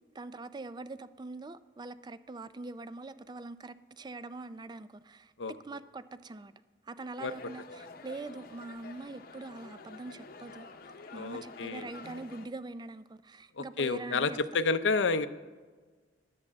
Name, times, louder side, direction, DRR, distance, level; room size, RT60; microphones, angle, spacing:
voice 1, 0.1-6.5 6.8-10.7 11.1-14.4, right 2 dB, 25° right, 0.4 m, -43 dB
sound 1, 7.2-12.5, left 3 dB, 55° left, 0.8 m, -49 dB
voice 2, 11.1-11.9 13.6-15.3, left 4 dB, 90° left, 0.6 m, -30 dB
11.0 x 7.6 x 7.3 m
head